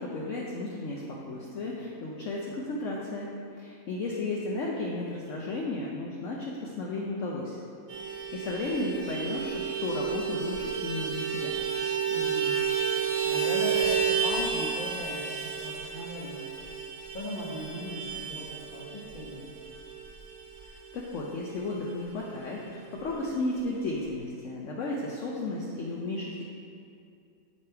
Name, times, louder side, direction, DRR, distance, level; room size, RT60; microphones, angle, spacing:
voice 1, 0.0-3.3 3.6-7.6 8.0-11.6 20.9-26.4, left 2 dB, 65° left, -3 dB, 0.7 m, -34 dB
Vehicle horn car horn honking, 7.9-21.8 22.1-22.2 22.5-22.7 22.9-23.6, right 7 dB, 45° right, 0.9 m, -31 dB
voice 2, 12.1-12.5 12.9-16.5 17.1-19.5, left 1 dB, 40° left, -2 dB, 0.9 m, -38 dB
8.6 x 3.3 x 4.5 m, 2.5 s
omnidirectional pair, 1.9 m